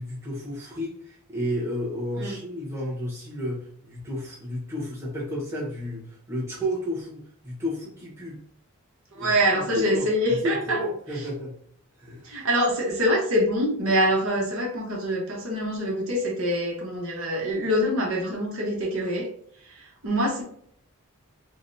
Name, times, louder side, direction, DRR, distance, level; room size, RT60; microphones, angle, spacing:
voice 1, 0.0-8.4 9.2-11.6 12.0-12.3, equal, 10° right, -6 dB, 1.3 m, -32 dB
voice 2, 9.1-10.8 12.2-19.3 19.6-20.4, equal, 70° right, -1 dB, 1.0 m, -25 dB
4.8 x 2.3 x 2.7 m, 0.63 s
head